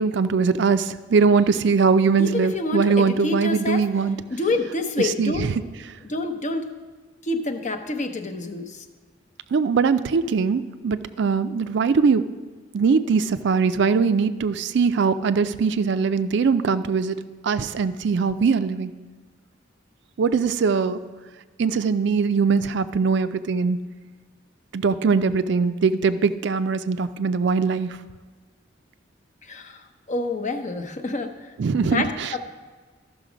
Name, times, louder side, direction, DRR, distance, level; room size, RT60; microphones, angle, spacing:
voice 1, 0.0-4.2 5.0-5.6 9.5-12.2 12.7-17.2 17.4-18.9 20.2-21.0 21.6-23.8 24.7-28.0 31.6-32.3, right 5 dB, 65° right, 12 dB, 0.4 m, -21 dB
voice 2, 2.2-3.8 4.3-5.5 6.0-6.6 7.2-8.8 29.4-31.3 31.8-32.4, left 2 dB, 40° left, 7 dB, 0.7 m, -27 dB
13.0 x 6.1 x 5.0 m, 1.4 s
head